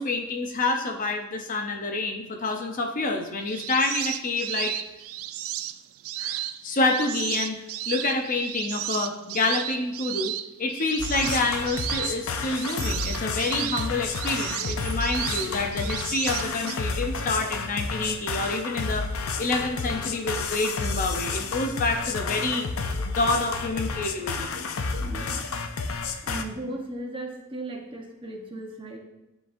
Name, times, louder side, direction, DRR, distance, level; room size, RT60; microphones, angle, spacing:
voice 1, 0.0-4.7 6.2-19.0 19.4-22.6 23.0-24.5, left 2 dB, 40° left, 3 dB, 0.6 m, -28 dB
sound 1, 3.4-16.8, right 13 dB, 75° right, 0.3 m, -34 dB
sound 2, 11.0-26.4, left 4 dB, 85° left, 0.5 m, -31 dB
voice 2, 25.0-25.4 26.2-29.0, right 1 dB, 25° right, 1 dB, 0.9 m, -36 dB
10.0 x 3.9 x 2.5 m, 0.95 s
head